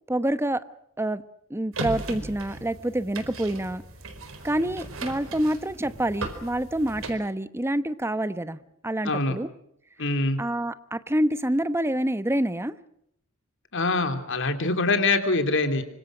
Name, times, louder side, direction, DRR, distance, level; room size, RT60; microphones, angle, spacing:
voice 1, 0.1-0.6 1.0-1.2 1.5-3.8 4.4-9.5 10.4-12.7, right 1 dB, 10° right, 13 dB, 1.0 m, -27 dB
sound 1, 1.7-7.1, right 2 dB, 70° right, 4.5 m, -37 dB
voice 2, 9.0-9.3 10.0-10.4 13.7-15.8, left 3 dB, 60° left, 7 dB, 3.2 m, -24 dB
26.0 x 25.5 x 6.3 m, 0.74 s
head